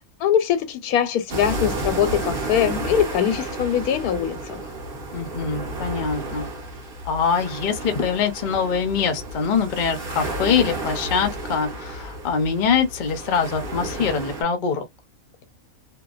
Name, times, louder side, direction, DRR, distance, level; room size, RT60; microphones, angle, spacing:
voice 1, 0.2-4.6, left 9 dB, 85° left, 1.1 m, -22 dB
sound 1, 1.3-14.4, right 2 dB, 45° right, 1.0 m, -32 dB
voice 2, 5.1-6.5 7.0-14.8, left 6 dB, 50° left, 0.6 m, -23 dB
2.7 x 2.1 x 2.4 m
omnidirectional pair, 1.6 m